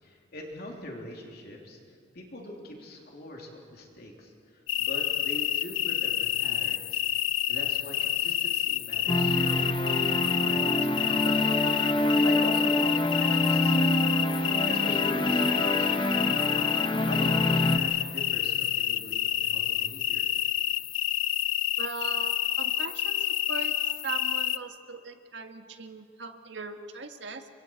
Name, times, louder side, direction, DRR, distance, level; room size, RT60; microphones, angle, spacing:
voice 1, 0.0-4.3 4.8-7.0 7.5-11.4 11.9-14.1 14.4-16.3 17.0-20.3, left 1 dB, 50° left, 0 dB, 3.2 m, -43 dB
sound 1, 4.7-24.6, left 12 dB, 85° left, 0.6 m, -28 dB
sound 2, 9.1-17.8, left 1 dB, 25° left, 1.1 m, -26 dB
voice 2, 21.8-23.7 24.0-27.5, right 4 dB, 65° right, 6 dB, 1.6 m, -39 dB
29.5 x 24.0 x 4.6 m, 2.3 s
head